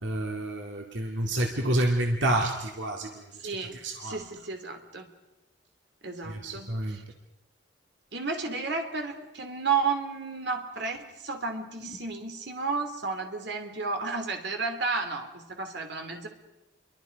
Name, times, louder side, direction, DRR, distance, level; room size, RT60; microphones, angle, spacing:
voice 1, 0.0-3.1 3.8-4.2 6.3-7.0, right 1 dB, 80° right, 1 dB, 2.2 m, -28 dB
voice 2, 3.4-5.1 6.0-7.0 8.1-16.3, right 4 dB, 65° right, 5 dB, 3.0 m, -32 dB
29.0 x 23.5 x 5.3 m, 0.99 s
head